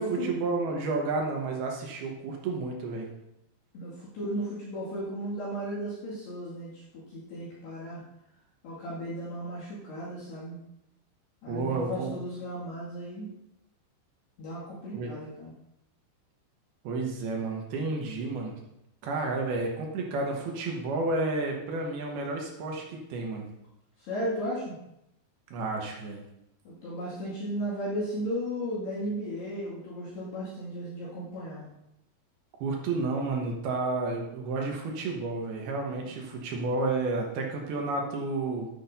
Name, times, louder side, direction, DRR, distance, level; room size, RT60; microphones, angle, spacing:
voice 1, 0.0-3.1 11.5-12.1 14.9-15.1 16.8-18.6 19.0-23.5 25.5-26.2 32.6-38.7, right 3 dB, 70° right, 0 dB, 2.7 m, -31 dB
voice 2, 3.7-8.0 8.6-10.6 11.4-13.3 14.4-15.5 24.0-24.8 26.7-31.7, equal, 65° left, -9 dB, 3.9 m, -35 dB
10.0 x 10.0 x 2.7 m, 0.84 s
omnidirectional pair, 5.4 m